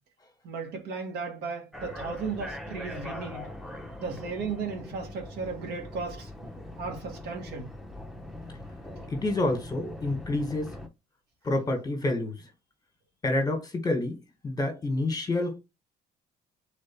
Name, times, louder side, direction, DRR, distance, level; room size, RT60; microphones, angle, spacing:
voice 1, 0.4-3.5 4.0-6.3 6.8-7.7 9.0-9.1, right 4 dB, 75° right, 1.5 m, -35 dB
sound 1, 1.7-10.9, left 1 dB, ahead, 0.9 m, -41 dB
voice 2, 9.1-10.7 11.4-12.5 13.2-15.6, left 2 dB, 20° left, 1.6 m, -28 dB
3.8 x 3.2 x 4.5 m
cardioid pair, 110°, 17 cm